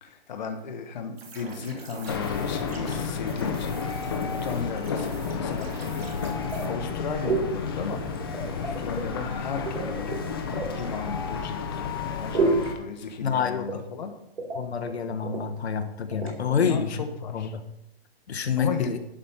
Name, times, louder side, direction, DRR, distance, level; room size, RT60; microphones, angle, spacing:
voice 1, 0.0-4.1 4.4-6.3 6.7-8.3 8.5-14.1 16.5-17.5 18.6-18.9, left 5 dB, 45° left, 5 dB, 1.0 m, -35 dB
sound 1, 1.2-6.7, right 3 dB, 70° right, 2.6 m, -45 dB
sound 2, 2.1-12.7, left 5 dB, 20° left, 0.8 m, -31 dB
sound 3, 6.5-7.0 7.2-7.5 7.8-9.1 9.7-10.7 12.3-12.7 13.7-14.1 14.4-14.6 14.9-15.0 15.2-15.4 16.1-16.3, right 3 dB, 90° right, 4.4 m, -28 dB
voice 2, 13.2-13.7 14.5-17.0 17.3-17.6 18.3-19.0, left 7 dB, 80° left, 7 dB, 1.3 m, -27 dB
11.5 x 5.1 x 5.6 m, 0.83 s
hypercardioid pair, 175°, 32 cm